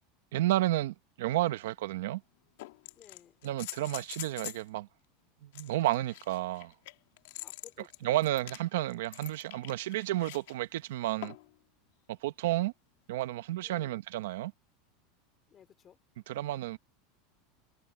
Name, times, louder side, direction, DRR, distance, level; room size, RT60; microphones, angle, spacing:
voice 1, 0.3-2.2 3.4-4.9 5.4-6.7 8.0-11.3 12.1-12.7 13.1-14.5 16.3-16.8, right 15 dB, 80° right, 1.1 m, -31 dB
sound 1, 1.5-1.6 2.6-4.7 5.5-10.5 11.2-11.6 13.2-13.3, left 18 dB, 75° left, 1.5 m, -45 dB
voice 2, 2.9-3.4 7.4-8.2 13.6-14.0 15.5-16.0, left 8 dB, 25° left, 3.9 m, -57 dB
supercardioid pair, 145°, 0 cm